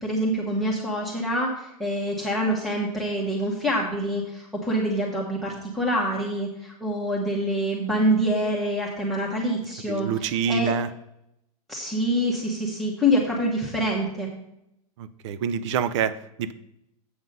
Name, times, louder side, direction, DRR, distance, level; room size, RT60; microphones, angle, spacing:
voice 1, 0.0-10.8 11.7-14.3, equal, ahead, -3 dB, 1.2 m, -26 dB
voice 2, 9.9-10.9 15.0-16.5, right 7 dB, 50° right, 15 dB, 0.6 m, -26 dB
7.9 x 5.9 x 5.3 m, 0.81 s
hypercardioid pair, 145°, 19 cm